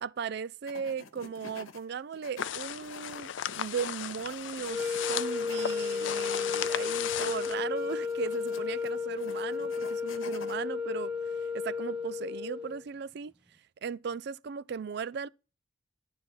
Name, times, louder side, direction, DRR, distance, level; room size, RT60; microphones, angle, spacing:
voice 1, 0.0-11.1 11.5-13.3 13.8-15.3, right 6 dB, 50° right, 0.3 m, -37 dB
sound 1, 0.7-1.8 2.1-10.6, left 4 dB, 85° left, 1.1 m, -48 dB
sound 2, 2.4-7.6, left 9 dB, 65° left, 0.4 m, -36 dB
sound 3, 4.6-12.8, left 5 dB, 5° right, 0.6 m, -33 dB
11.0 x 3.8 x 5.7 m
head